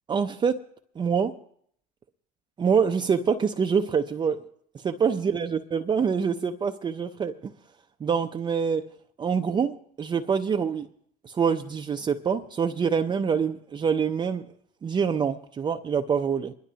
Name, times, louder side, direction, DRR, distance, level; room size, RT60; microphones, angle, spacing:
voice 1, 0.1-0.6 1.0-1.4 2.6-4.4 4.7-7.5 8.0-8.9 9.2-10.9 11.2-14.5 14.8-16.5, right 6 dB, 25° right, 0.5 m, -25 dB
23.5 x 11.5 x 2.8 m
supercardioid pair, 100°, 19 cm